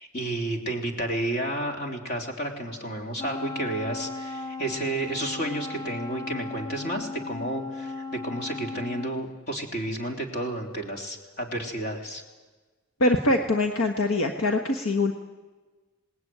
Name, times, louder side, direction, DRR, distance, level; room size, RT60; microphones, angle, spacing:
voice 1, 0.0-12.2, right 1 dB, 45° left, 2 dB, 3.6 m, -31 dB
Wind instrument woodwind instrument, 3.2-9.3, left 3 dB, 15° left, 0.9 m, -36 dB
voice 2, 13.0-15.1, left 2 dB, 70° left, 4 dB, 1.4 m, -23 dB
27.0 x 19.5 x 9.5 m, 1.3 s
head